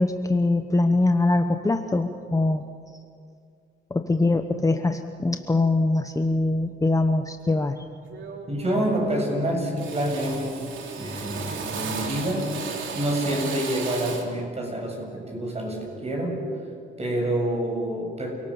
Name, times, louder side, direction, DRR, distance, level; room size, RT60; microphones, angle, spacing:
voice 1, 0.0-2.6 3.9-7.8, left 2 dB, 15° left, 6 dB, 1.1 m, -23 dB
Drill, 7.5-7.7 8.1-8.6 8.9-9.4 9.8-14.4, right 5 dB, 75° right, 3.2 m, -35 dB
voice 2, 8.5-10.7 11.0-12.5 12.9-16.4 17.0-18.3, right 1 dB, 30° right, 1 dB, 7.6 m, -27 dB
28.5 x 18.5 x 7.2 m, 2.3 s
cardioid pair, 90°, 20 cm